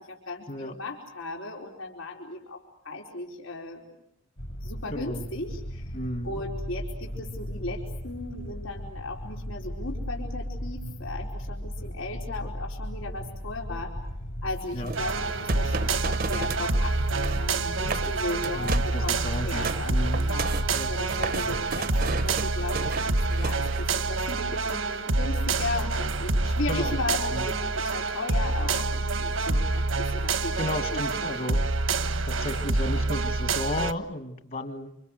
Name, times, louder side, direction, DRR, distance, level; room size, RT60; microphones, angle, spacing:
voice 1, 0.0-3.8 4.6-5.9 6.2-14.0 14.4-20.6 20.9-30.6 30.9-31.4, left 2 dB, 85° left, -1 dB, 4.6 m, -36 dB
sound 1, 4.4-22.1, equal, 70° left, 5.8 m, -37 dB
voice 2, 4.9-5.3 5.9-6.4 14.7-14.9 18.5-20.3 20.7-20.9 26.7-27.0 27.3-27.5 30.6-31.6 32.2-35.0, left 1 dB, 45° left, 7 dB, 2.1 m, -34 dB
sound 2, 14.8-16.7 17.0-17.5 17.8-18.1 18.4-19.0 19.3-24.0, right 5 dB, 45° right, 0.9 m, -34 dB
sound 3, 14.9-33.9, right 3 dB, 80° right, 1.5 m, -27 dB
29.0 x 27.5 x 6.7 m, 0.79 s
head